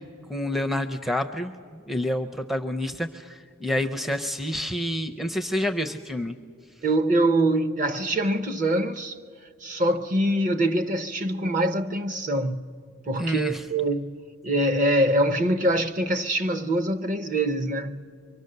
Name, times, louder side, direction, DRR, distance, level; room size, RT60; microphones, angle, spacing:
voice 1, 0.3-6.4 13.2-13.6, left 1 dB, ahead, 0.5 m, -28 dB
voice 2, 6.8-9.2 9.6-12.7 13.1-14.2 14.4-18.1, right 1 dB, 35° right, 0.7 m, -24 dB
25.0 x 23.5 x 6.6 m
head